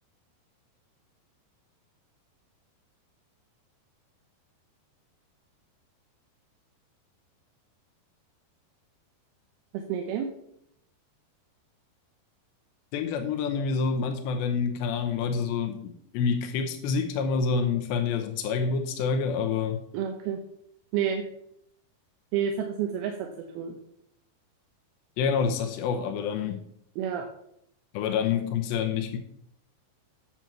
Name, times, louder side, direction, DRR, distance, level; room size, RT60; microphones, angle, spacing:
voice 1, 9.7-10.3 19.9-20.4 20.9-21.3 22.3-23.3 23.5-23.8 27.0-27.3, right 8 dB, 75° right, 3 dB, 2.6 m, -29 dB
voice 2, 12.9-19.8 25.2-26.6 27.9-29.2, left 5 dB, 90° left, 5 dB, 3.0 m, -27 dB
9.3 x 7.5 x 5.7 m, 0.74 s
omnidirectional pair, 5.0 m